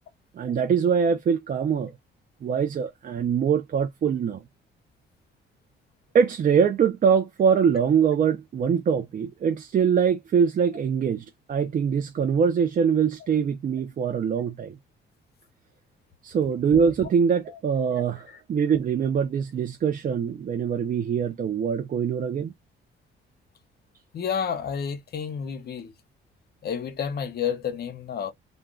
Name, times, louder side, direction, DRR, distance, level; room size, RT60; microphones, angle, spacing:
voice 1, 0.4-1.9 2.4-4.4 6.1-14.7 16.2-22.5, right 7 dB, 45° right, 0.5 m, -23 dB
voice 2, 24.1-25.9 26.6-28.3, left 7 dB, 55° left, 0.7 m, -30 dB
2.3 x 2.2 x 3.6 m
cardioid pair, 90°, 20 cm